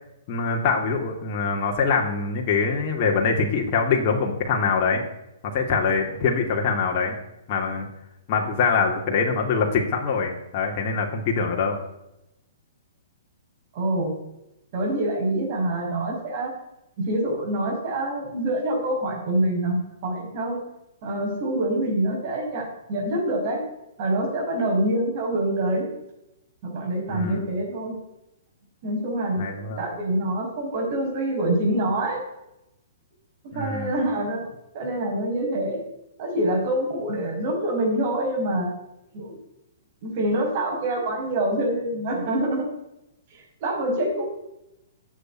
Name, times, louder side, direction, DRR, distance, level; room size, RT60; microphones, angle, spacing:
voice 1, 0.3-5.0 5.4-7.2 7.5-7.9 8.3-11.8 27.1-27.5 29.4-29.8 33.5-33.9, left 5 dB, 40° left, 0 dB, 2.8 m, -24 dB
voice 2, 13.7-14.1 14.7-16.5 17.0-20.6 21.0-23.6 24.0-25.9 26.6-28.0 28.8-29.4 29.8-32.2 33.4-34.4 34.7-35.8 36.2-38.7 39.1-39.4 40.0-42.7 43.3-44.3, right 1 dB, 45° right, 0 dB, 5.4 m, -25 dB
13.0 x 8.5 x 9.4 m, 0.88 s
figure-of-eight pair, 115°, 0 cm